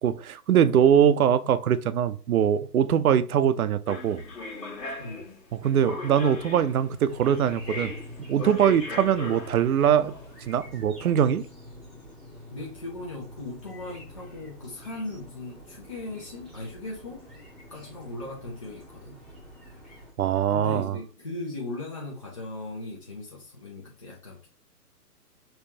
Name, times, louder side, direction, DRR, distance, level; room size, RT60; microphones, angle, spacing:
voice 1, 0.0-4.2 5.6-7.9 8.2-10.2 10.4-11.5 20.2-21.0, right 9 dB, 65° right, 0.6 m, -22 dB
sound 1, 3.9-10.6, left 3 dB, 90° left, 1.9 m, -38 dB
sound 2, 7.1-20.1, left 1 dB, ahead, 0.9 m, -46 dB
voice 2, 12.5-17.3 17.7-19.2 20.5-24.5, left 2 dB, 20° left, 0.4 m, -38 dB
5.4 x 2.9 x 2.7 m
figure-of-eight pair, 135°, 48 cm